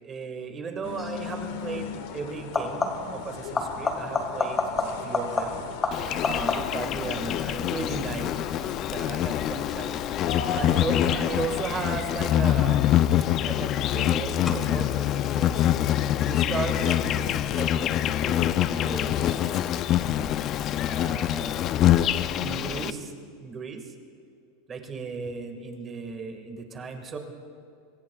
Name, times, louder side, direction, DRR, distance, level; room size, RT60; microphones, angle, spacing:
voice 1, 0.0-5.6 6.2-8.3 8.9-10.0 10.5-12.9 13.4-15.7 16.2-19.7 20.8-21.8 22.2-23.1 23.4-23.9 24.7-27.2, right 4 dB, 20° right, 4 dB, 1.7 m, -36 dB
sound 1, 0.8-11.6, left 6 dB, 65° left, 1.5 m, -38 dB
sound 2, 1.0-1.2 2.4-3.2 3.5-6.9 12.4-12.9 14.5-14.6, left 4 dB, 20° left, 1.7 m, -29 dB
Insect, 5.9-22.9, left 12 dB, 35° left, 0.4 m, -25 dB
25.5 x 22.5 x 2.3 m, 2.5 s
supercardioid pair, 145°, 0 cm